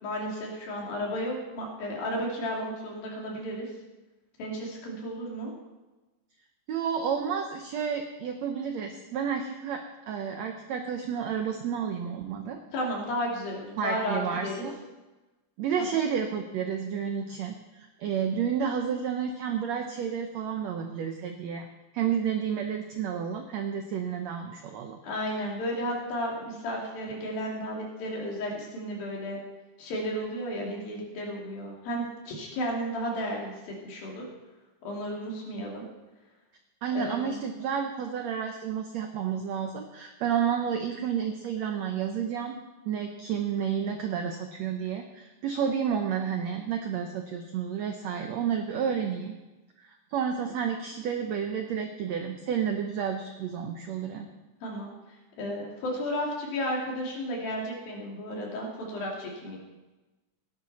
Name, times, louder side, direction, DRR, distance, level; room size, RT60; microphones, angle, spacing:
voice 1, 0.0-3.7 4.4-5.5 12.7-14.6 15.8-15.9 25.0-29.4 29.8-34.3 34.8-35.8 36.9-37.4 54.6-54.9 55.4-59.6, equal, 75° left, -2 dB, 4.4 m, -33 dB
voice 2, 6.7-12.6 13.8-14.7 15.6-21.7 21.9-25.0 36.8-42.6 42.8-49.3 49.8-54.3, right 7 dB, 85° right, 5 dB, 1.5 m, -31 dB
17.0 x 10.5 x 4.2 m, 1.1 s
omnidirectional pair, 4.2 m